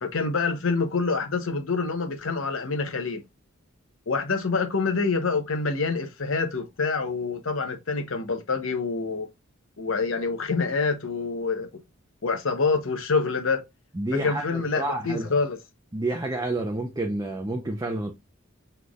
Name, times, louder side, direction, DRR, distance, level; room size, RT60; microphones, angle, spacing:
voice 1, 0.0-3.2 4.1-9.3 9.8-11.7 12.2-13.6 14.2-15.6, left 4 dB, 70° left, 0.9 m, -26 dB
voice 2, 14.0-15.3 15.9-18.1, right 2 dB, 20° right, 0.6 m, -29 dB
5.9 x 3.4 x 2.3 m
head